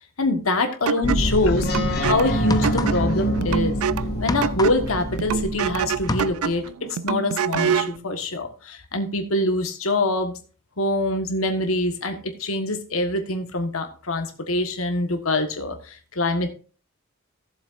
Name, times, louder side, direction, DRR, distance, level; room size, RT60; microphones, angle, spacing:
voice 1, 0.2-1.7 2.0-3.7 4.2-6.6 7.0-10.4 10.8-16.5, left 2 dB, 70° left, 5 dB, 1.5 m, -24 dB
sound 1, 0.9-8.0, right 7 dB, 85° right, 0.4 m, -27 dB
sound 2, 1.0-6.2, equal, 50° left, 2.2 m, -25 dB
sound 3, 1.5-1.7 2.3-3.3 3.5-5.7 5.9-6.7, left 2 dB, 20° left, 0.5 m, -30 dB
17.0 x 7.2 x 2.6 m, 0.37 s
head